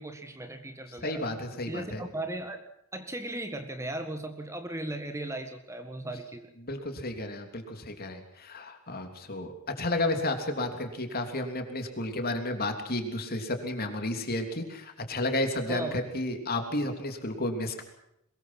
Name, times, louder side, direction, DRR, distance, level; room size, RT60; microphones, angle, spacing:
voice 1, 0.0-1.2 1.7-2.6 2.9-6.5 15.7-16.0, right 1 dB, 15° right, 7 dB, 1.7 m, -37 dB
voice 2, 1.0-2.0 6.6-17.8, left 1 dB, 45° left, 5 dB, 3.3 m, -32 dB
23.0 x 21.0 x 6.0 m, 0.78 s
head